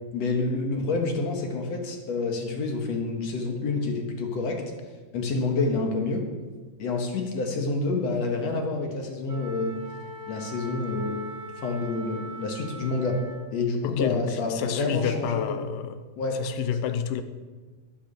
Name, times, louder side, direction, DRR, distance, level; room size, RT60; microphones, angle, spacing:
voice 1, 0.1-4.6 5.1-6.2 6.8-9.8 10.3-13.2 13.5-15.6 16.2-16.4, left 3 dB, 60° left, 2 dB, 2.2 m, -28 dB
Wind instrument woodwind instrument, 9.3-13.6, right 2 dB, 50° right, 2.1 m, -41 dB
voice 2, 13.8-16.0 16.3-17.2, left 9 dB, 85° left, 10 dB, 2.3 m, -29 dB
12.0 x 8.6 x 6.6 m, 1.4 s
omnidirectional pair, 4.0 m